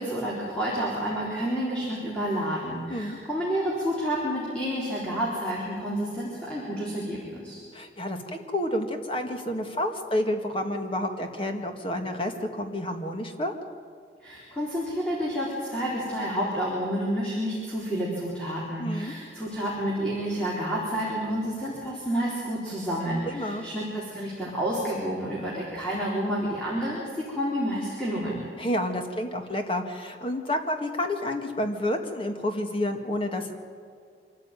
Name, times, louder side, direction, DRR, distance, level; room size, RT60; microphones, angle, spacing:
voice 1, 0.0-7.6 14.2-28.4, equal, 5° left, -6 dB, 4.0 m, -29 dB
voice 2, 7.7-13.5 18.8-19.2 23.3-23.6 28.6-33.5, left 1 dB, 30° left, 5 dB, 1.9 m, -29 dB
25.0 x 14.5 x 9.1 m, 2.3 s
head